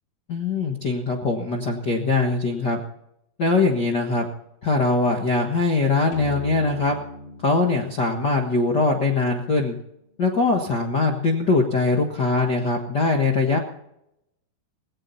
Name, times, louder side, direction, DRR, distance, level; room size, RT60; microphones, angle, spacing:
voice 1, 0.3-2.8 3.4-4.3 4.6-7.0 7.4-9.8 10.2-13.6, left 3 dB, 80° left, 2 dB, 0.9 m, -22 dB
sound 1, 6.1-9.6, equal, 40° left, 3.2 m, -39 dB
17.5 x 16.5 x 4.2 m, 0.79 s
omnidirectional pair, 4.6 m